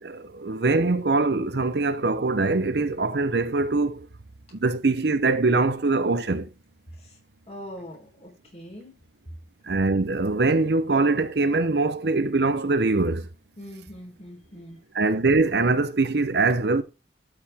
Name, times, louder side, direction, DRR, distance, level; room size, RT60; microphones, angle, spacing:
voice 1, 0.0-4.1 4.5-6.5 9.6-13.3 14.9-16.8, right 3 dB, 65° right, 0.8 m, -23 dB
voice 2, 7.5-8.9 13.6-14.8, equal, 35° left, 3.9 m, -42 dB
12.5 x 5.0 x 3.5 m
head